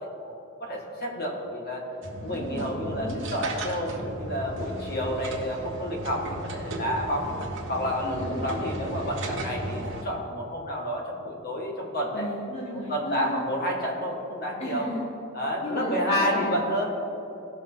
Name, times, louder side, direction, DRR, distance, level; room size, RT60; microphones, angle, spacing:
voice 1, 0.0-1.9 2.2-7.4 7.7-12.3 12.7-14.9 15.3-16.8, equal, 50° left, -1 dB, 1.9 m, -30 dB
sound 1, 2.0-10.0, right 1 dB, 60° right, 1.4 m, -35 dB
voice 2, 2.2-3.2 8.0-8.4 12.1-13.4 14.6-15.0 15.6-16.6, equal, 30° left, -5 dB, 1.4 m, -34 dB
17.0 x 6.2 x 4.0 m, 2.9 s
head